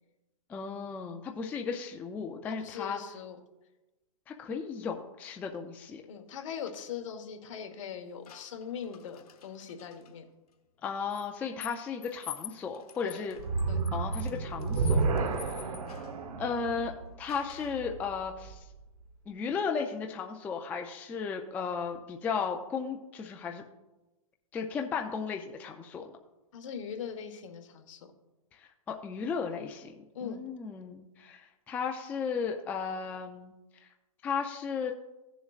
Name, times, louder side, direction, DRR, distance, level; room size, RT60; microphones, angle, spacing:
voice 1, 0.5-3.0 4.3-6.0 10.8-13.4 13.9-15.0 16.4-16.9 17.2-18.6 19.3-23.6 24.5-26.0 28.5-33.5 34.2-34.9, left 5 dB, 10° left, 3 dB, 0.3 m, -35 dB
voice 2, 2.5-3.4 6.1-10.2 13.0-13.2 13.7-13.8 15.2-15.4 26.5-28.1 30.1-30.5, left 7 dB, 55° left, 5 dB, 1.3 m, -41 dB
sound 1, 8.2-10.1 11.1-16.2 17.3-17.9, left 10 dB, 85° left, 1.2 m, -48 dB
sound 2, 13.3-18.6, right 4 dB, 75° right, 1.1 m, -31 dB
16.0 x 7.0 x 2.4 m, 1.1 s
hypercardioid pair, 150°, 19 cm